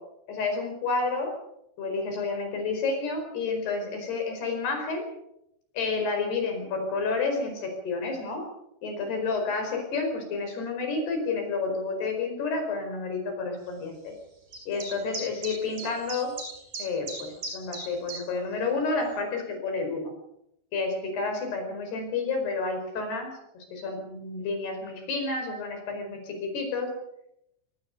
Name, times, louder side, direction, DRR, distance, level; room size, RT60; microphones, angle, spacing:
voice 1, 0.3-1.3 1.8-5.1 5.7-8.4 8.8-14.1 14.7-16.3 16.8-20.1 20.7-26.9, left 4 dB, 60° left, 4 dB, 6.7 m, -30 dB
sound 1, 14.5-18.2, right 2 dB, 45° right, 7.1 m, -37 dB
23.0 x 18.5 x 6.8 m, 0.80 s
omnidirectional pair, 5.5 m